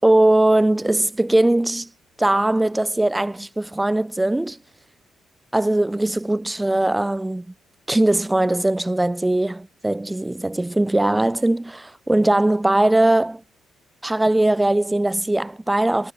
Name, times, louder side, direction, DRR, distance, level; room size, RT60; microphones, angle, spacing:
voice 1, 0.0-1.9 2.2-4.6 5.5-7.5 7.9-13.4 14.0-16.1, right 1 dB, 10° right, 6.0 m, -20 dB
cardioid pair, 90°, 0 cm